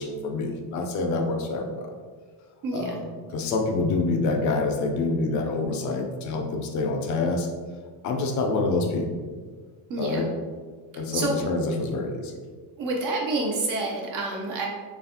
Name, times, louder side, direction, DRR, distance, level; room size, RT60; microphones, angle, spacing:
voice 1, 0.0-1.9 2.7-3.0 3.3-7.5 8.0-9.2 10.0-10.3 11.0-12.3, left 3 dB, 40° left, 3 dB, 0.5 m, -26 dB
voice 2, 2.6-3.0 9.9-10.2 11.1-11.4 12.8-14.7, right 2 dB, 45° right, -1 dB, 0.6 m, -28 dB
4.0 x 3.3 x 2.7 m, 1.6 s
cardioid pair, 145°, 48 cm